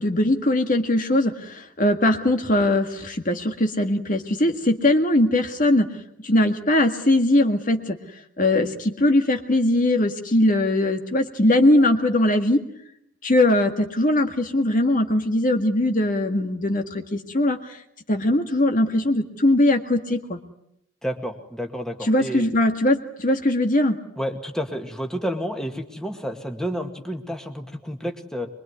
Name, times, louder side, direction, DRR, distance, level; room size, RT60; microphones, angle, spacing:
voice 1, 0.0-5.9 6.2-8.0 8.4-12.6 13.2-17.8 18.1-20.4 22.0-24.0, left 1 dB, 40° left, 5 dB, 1.9 m, -20 dB
voice 2, 21.0-22.5 24.2-28.5, equal, 5° left, 4 dB, 2.1 m, -30 dB
24.5 x 23.0 x 9.7 m, 0.76 s
head